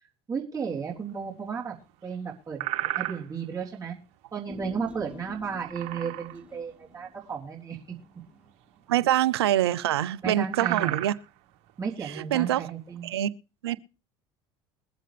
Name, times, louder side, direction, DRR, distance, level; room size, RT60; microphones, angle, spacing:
voice 1, 0.3-1.8 2.0-4.0 4.3-8.0 10.2-11.0 11.8-13.1, right 6 dB, 25° right, 3.4 m, -34 dB
sound 1, 0.9-1.5 1.9-2.1 2.5-3.6 5.4-6.5 6.8-6.9 7.3-7.5 8.5-9.6 9.9-10.0 10.2-13.1, right 15 dB, 65° right, 1.6 m, -34 dB
Human voice, 4.5-9.1 9.4-9.5, left 2 dB, 10° right, 1.3 m, -48 dB
voice 2, 8.9-11.1 12.3-12.6 13.0-13.3 13.6-13.8, right 12 dB, 85° right, 0.6 m, -24 dB
22.0 x 7.6 x 3.4 m
hypercardioid pair, 75°, 13 cm